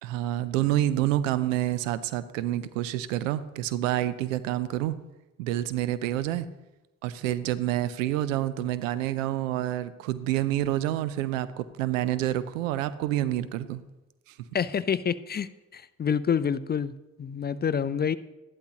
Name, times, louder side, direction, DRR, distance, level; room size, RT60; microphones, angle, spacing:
voice 1, 0.0-5.0 5.4-6.5 7.0-13.8 14.3-14.4, right 13 dB, 85° right, 15 dB, 0.5 m, -28 dB
voice 2, 14.5-16.9 17.2-18.2, left 7 dB, 25° left, 16 dB, 0.4 m, -27 dB
12.0 x 11.5 x 2.9 m, 1.0 s
hypercardioid pair, 50°, 38 cm